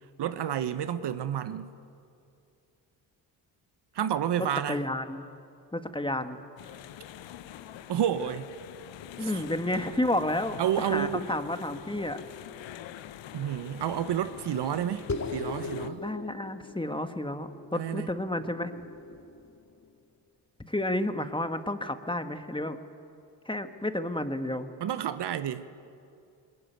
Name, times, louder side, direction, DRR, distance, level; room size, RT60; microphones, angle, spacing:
voice 1, 0.2-1.7 3.9-4.8 7.9-8.5 9.2-9.4 10.6-11.2 13.3-15.0 15.3-16.0 17.7-18.1 24.8-25.7, right 10 dB, 60° right, 1.1 m, -30 dB
voice 2, 4.4-5.2 5.7-6.4 9.2-12.2 16.0-18.7 20.6-22.8 23.4-24.7, left 1 dB, 10° left, 1.7 m, -31 dB
sound 1, 6.6-15.9, left 11 dB, 70° left, 1.0 m, -45 dB
sound 2, 15.1-19.9, left 3 dB, 35° left, 2.1 m, -39 dB
21.0 x 20.0 x 9.4 m
supercardioid pair, 50°, 46 cm